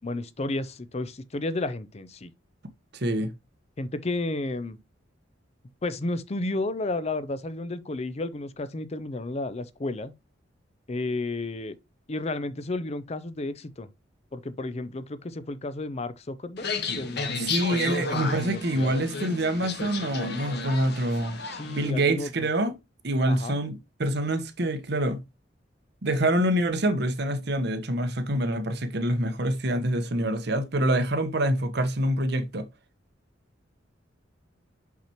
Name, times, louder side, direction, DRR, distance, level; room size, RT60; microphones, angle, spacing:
voice 1, 0.0-2.3 3.8-4.8 5.8-10.1 10.9-11.8 12.1-13.9 14.3-16.7 17.0-18.9 21.4-22.5 23.2-23.6, left 2 dB, 35° left, 0.5 m, -32 dB
voice 2, 2.9-3.3 17.4-21.4 21.6-22.7 23.0-25.2 26.0-32.7, right 1 dB, 60° right, 1.0 m, -26 dB
sound 1, 16.6-21.9, left 4 dB, 60° left, 1.3 m, -33 dB
5.9 x 5.9 x 2.9 m
head